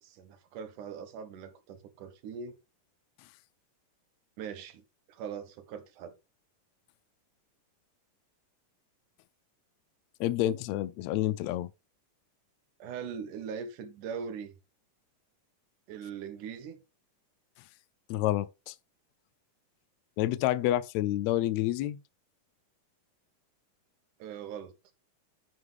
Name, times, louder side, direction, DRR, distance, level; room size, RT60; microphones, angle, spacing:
voice 1, 0.0-2.6 4.4-4.8 5.1-6.2 12.8-14.5 15.9-16.8 24.2-24.8, right 7 dB, 75° right, 2.5 m, -41 dB
voice 2, 10.2-11.7 18.1-18.7 20.2-22.0, left 14 dB, 85° left, 1.5 m, -28 dB
9.6 x 6.2 x 3.4 m
omnidirectional pair, 3.7 m